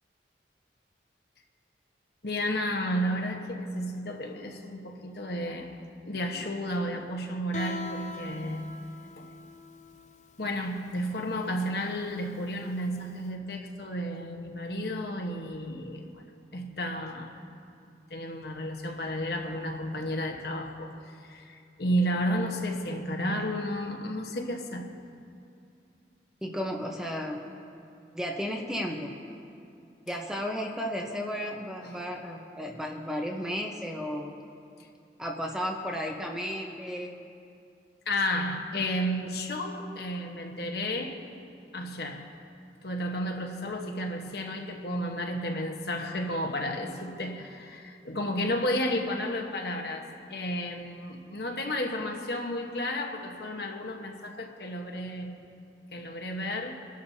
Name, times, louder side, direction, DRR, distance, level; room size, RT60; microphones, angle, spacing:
voice 1, 2.2-5.7 6.1-8.6 9.2-9.3 10.4-16.2 16.5-17.4 18.1-24.9 31.8-32.0 38.0-41.2 41.7-42.3 42.8-55.4 55.9-56.7, equal, 65° left, 1.2 m, -32 dB
Guitar, 7.5-13.2, left 3 dB, 40° left, 0.5 m, -43 dB
voice 2, 26.4-27.4 28.1-29.1 30.1-34.3 35.2-37.1, equal, 5° right, 0.9 m, -33 dB
27.5 x 11.5 x 2.8 m
head